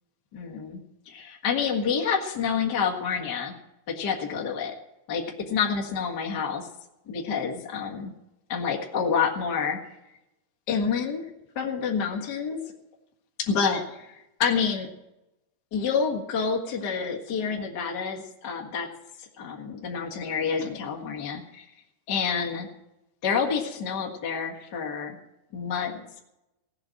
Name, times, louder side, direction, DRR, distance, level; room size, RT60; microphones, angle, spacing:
voice 1, 0.3-0.8 1.1-3.5 3.9-4.7 5.1-6.7 7.1-8.1 8.5-9.8 10.7-11.3 11.6-12.6 13.5-14.9 15.7-18.9 19.2-21.7 22.1-22.7 23.2-25.2 25.5-26.0, left 6 dB, 40° left, 0 dB, 1.9 m, -28 dB
16.5 x 8.2 x 7.6 m, 0.92 s
omnidirectional pair, 3.6 m